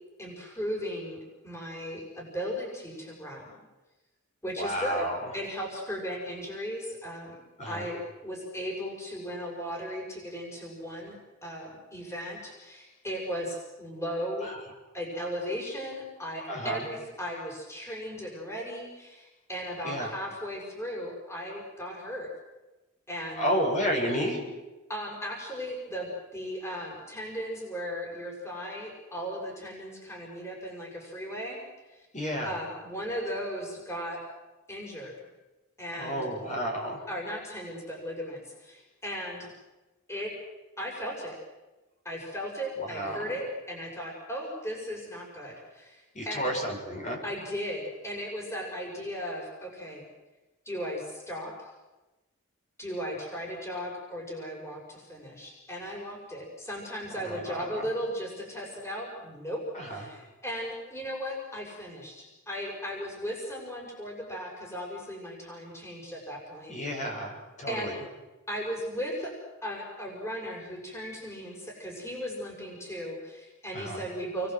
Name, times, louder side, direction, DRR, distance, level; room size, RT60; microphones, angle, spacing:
voice 1, 0.2-3.5 4.4-7.4 7.7-14.5 14.9-22.3 23.1-23.5 24.9-31.6 31.9-32.1 32.4-34.2 34.7-35.3 35.8-36.3 37.1-39.5 40.1-40.3 40.8-41.4 42.0-46.5 47.2-50.0 50.6-51.7 52.8-67.0 67.7-67.9 68.5-69.4 69.6-74.5, equal, 15° left, -1 dB, 6.7 m, -36 dB
voice 2, 4.4-5.2 7.6-7.8 14.4-14.6 16.5-16.8 19.8-20.1 23.4-24.4 32.1-32.6 35.9-37.0 42.9-43.3 46.1-47.2 57.2-57.9 59.7-60.0 66.7-68.0 73.7-74.0, equal, 35° left, 0 dB, 7.2 m, -31 dB
29.5 x 23.0 x 8.0 m, 1.1 s
head